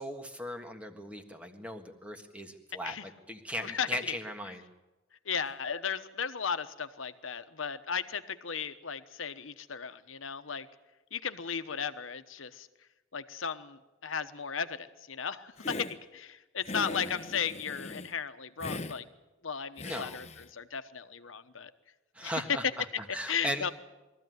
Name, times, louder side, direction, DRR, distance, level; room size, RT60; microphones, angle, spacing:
voice 1, 0.0-4.7 19.8-20.2 22.1-23.7, equal, 5° right, 5 dB, 1.6 m, -38 dB
voice 2, 3.6-4.2 5.2-10.7 11.1-12.7 13.1-19.0 19.4-20.3 20.5-21.7 22.2-22.3 23.3-23.7, left 6 dB, 85° left, 10 dB, 1.1 m, -35 dB
Hiss, 15.6-16.0 16.6-18.1 18.6-19.0 19.8-20.5, left 2 dB, 35° left, 1.0 m, -40 dB
22.0 x 14.5 x 9.4 m, 1.1 s
head